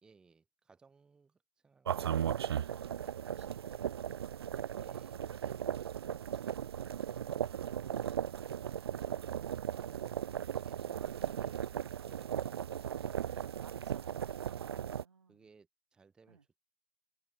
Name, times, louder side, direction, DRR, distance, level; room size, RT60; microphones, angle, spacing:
voice 1, 0.0-2.6 4.8-5.2 9.7-14.4 15.3-16.6, right 5 dB, 5° right, 1.2 m, -64 dB
sound 1, 1.9-15.0, right 9 dB, 65° right, 0.4 m, -37 dB
voice 2, 2.6-4.1 4.8-5.8 6.3-8.8 13.2-15.5 16.3-16.4, right 5 dB, 90° right, 3.4 m, -61 dB
hypercardioid pair, 155°, 14 cm